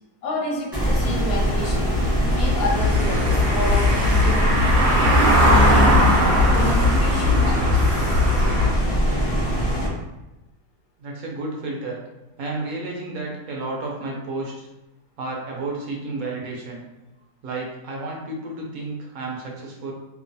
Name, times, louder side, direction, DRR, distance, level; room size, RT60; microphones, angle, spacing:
voice 1, 0.2-2.0 2.3-4.6 5.5-6.0 6.5-8.6, left 2 dB, 70° left, -2 dB, 1.0 m, -30 dB
sound 1, 0.7-9.9, equal, 15° right, 0.5 m, -22 dB
Car passing by / Engine, 1.9-8.7, left 2 dB, 90° right, 1.3 m, -19 dB
voice 2, 11.0-12.0 12.4-14.7 15.2-16.9 17.4-19.9, right 2 dB, 70° right, -2 dB, 1.0 m, -31 dB
3.0 x 2.0 x 2.6 m, 0.98 s
omnidirectional pair, 1.7 m